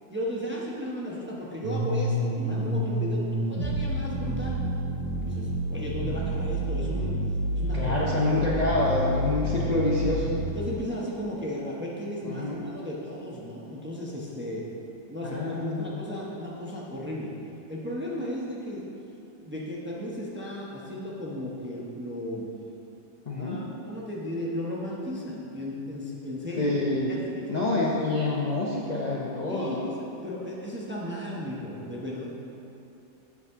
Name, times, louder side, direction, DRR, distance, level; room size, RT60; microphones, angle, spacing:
voice 1, 0.1-4.6 5.2-7.2 7.5-7.9 8.3-8.4 10.5-14.6 15.1-17.3 17.7-18.9 19.4-22.5 23.4-26.7 27.1-27.7 29.5-32.2, equal, 10° right, -5 dB, 0.6 m, -35 dB
sound 1, 1.6-10.4, right 1 dB, 75° right, 1.4 m, -29 dB
voice 2, 7.7-10.4 12.2-12.6 15.2-15.9 23.3-23.6 26.5-27.1 27.5-29.9, left 2 dB, 65° left, -5 dB, 0.4 m, -27 dB
8.2 x 4.1 x 6.0 m, 2.9 s
omnidirectional pair, 1.8 m